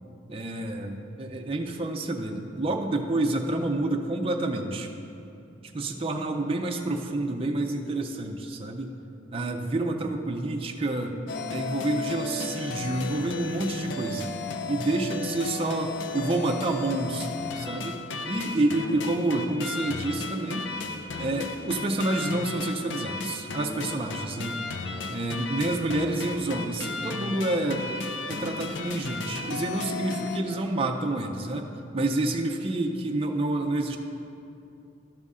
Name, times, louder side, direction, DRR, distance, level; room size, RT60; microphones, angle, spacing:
voice 1, 0.3-4.9 5.7-8.9 9.3-11.2 11.5-14.3 14.7-18.0 18.3-20.7 21.2-24.6 25.1-27.9 28.3-31.7 31.9-34.0, right 2 dB, 30° right, 1 dB, 0.5 m, -28 dB
sound 1, 11.3-30.4, left 3 dB, 85° left, 0.5 m, -35 dB
12.5 x 5.4 x 3.7 m, 2.8 s
head